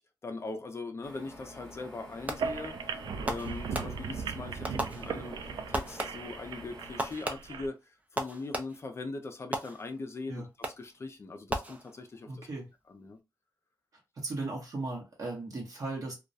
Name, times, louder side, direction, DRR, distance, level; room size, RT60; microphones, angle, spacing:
voice 1, 0.0-12.5 12.9-13.2, left 3 dB, 35° left, 0.4 m, -41 dB
sound 1, 1.0-7.2, left 1 dB, 10° left, 0.8 m, -49 dB
sound 2, 2.2-7.7, right 5 dB, 85° right, 0.4 m, -38 dB
Fireworks, 2.3-2.7 3.3-4.3 4.6-5.4 5.7-6.4 7.0-9.0 9.5-10.2 10.6-11.0 11.5-12.3, right 1 dB, 20° right, 0.4 m, -37 dB
voice 2, 12.3-12.7 14.2-16.1, right 2 dB, 50° right, 0.9 m, -37 dB
2.3 x 2.1 x 2.6 m
wide cardioid pair, 125°, 7 cm